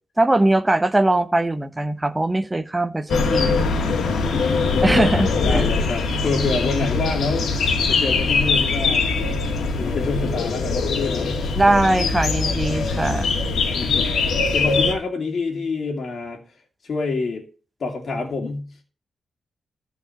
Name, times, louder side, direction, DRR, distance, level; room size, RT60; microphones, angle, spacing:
voice 1, 0.2-3.6 4.8-5.7 11.6-13.3, right 2 dB, 10° right, 0.8 m, -20 dB
sound 1, 3.1-14.9, left 4 dB, 75° left, 1.9 m, -22 dB
voice 2, 4.3-4.8 5.4-7.5 7.9-9.1 9.7-11.4 13.5-14.1 14.5-16.4 16.8-17.4 17.8-18.7, left 3 dB, 50° left, 2.5 m, -27 dB
13.5 x 4.8 x 7.8 m
wide cardioid pair, 125°, 0 cm